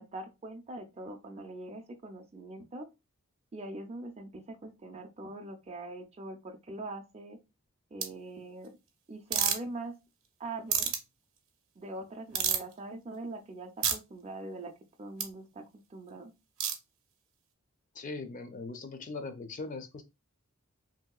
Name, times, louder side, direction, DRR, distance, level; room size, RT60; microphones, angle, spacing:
voice 1, 0.0-2.9 3.5-7.4 7.9-8.7 9.1-9.9 10.4-10.9 11.8-14.7 15.0-16.3, right 2 dB, 30° right, 5 dB, 0.4 m, -42 dB
sound 1, 8.0-8.1 9.3-9.6 10.7-11.0 12.3-12.7 13.8-14.0 15.2-15.3 16.6-16.8, right 8 dB, 70° right, 0.6 m, -28 dB
voice 2, 18.0-20.0, left 3 dB, 35° left, 8 dB, 0.4 m, -40 dB
3.0 x 2.7 x 2.2 m, 0.25 s
head